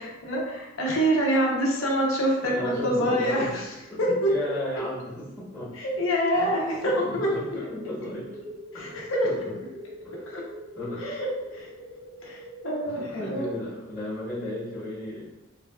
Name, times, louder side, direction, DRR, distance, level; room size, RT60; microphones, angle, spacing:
voice 1, 0.0-3.6 4.0-4.6 5.8-7.3 8.8-9.3 10.3-10.4 11.0-11.3 11.5-11.7 12.2-13.5, equal, 80° left, -2 dB, 0.7 m, -26 dB
voice 2, 2.4-3.6 3.9-5.7 6.3-6.5 6.8-8.3 8.7-9.5 10.0-10.3 10.7-11.2 12.9-15.2, left 1 dB, 10° left, -10 dB, 1.0 m, -35 dB
sound 1, 6.3-12.8, equal, 30° right, 0.5 m, -43 dB
3.3 x 2.4 x 2.3 m, 1.0 s
head